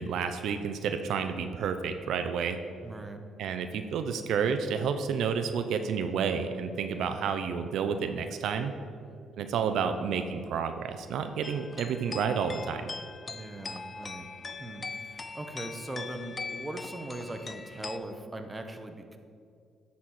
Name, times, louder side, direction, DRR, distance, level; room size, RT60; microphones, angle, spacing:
voice 1, 0.0-2.6 3.4-8.7 9.4-12.9, right 6 dB, 75° right, 8 dB, 0.5 m, -30 dB
voice 2, 2.8-3.2 9.0-9.3 13.3-14.3 14.6-19.2, right 1 dB, 20° right, 5 dB, 0.9 m, -40 dB
sound 1, 11.4-18.0, left 4 dB, 30° left, 0.4 m, -41 dB
10.5 x 4.2 x 6.4 m, 2.3 s
cardioid pair, 90°, 0 cm